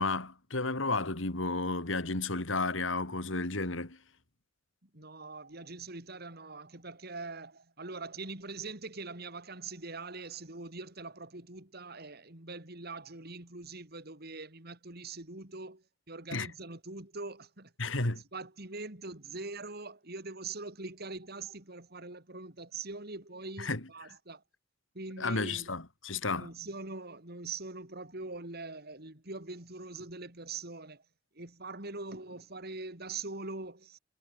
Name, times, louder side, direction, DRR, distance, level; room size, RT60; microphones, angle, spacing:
voice 1, 0.0-4.0 16.3-16.5 17.8-18.2 23.6-23.8 25.2-26.5, left 3 dB, 80° left, 2.9 m, -32 dB
voice 2, 4.9-17.7 18.3-24.4 24.9-25.7 26.4-31.0 31.3-34.0, right 3 dB, 55° right, 4.0 m, -43 dB
head